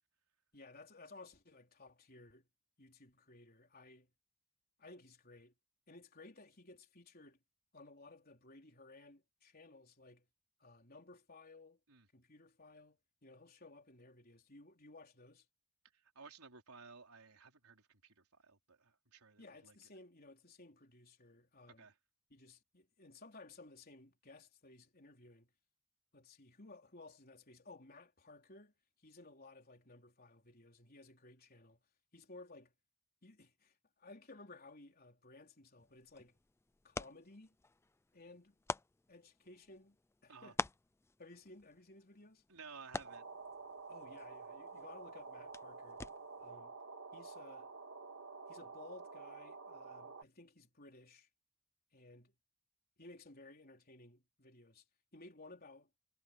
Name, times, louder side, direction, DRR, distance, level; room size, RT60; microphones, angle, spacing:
voice 1, 0.5-2.5 2.8-4.1 4.8-5.5 5.9-7.4 7.7-10.3 10.6-11.8 12.1-15.5 19.4-21.9 22.3-25.5 26.1-31.8 32.1-32.7 33.2-36.4 36.8-37.6 38.1-38.6 39.1-40.0 40.2-40.6 41.2-42.4 43.9-46.0 46.4-46.8 47.1-47.7 48.5-51.3 51.9-52.3 53.0-54.8 55.1-55.9, left 2 dB, 40° left, 4.0 m, -58 dB
voice 2, 16.1-19.7 21.8-21.9 40.3-40.5 42.5-43.2, right 5 dB, 80° right, 4.2 m, -56 dB
sound 1, 35.8-46.5, left 3 dB, 10° left, 0.4 m, -48 dB
sound 2, 43.0-50.2, right 4 dB, 60° right, 2.4 m, -50 dB
head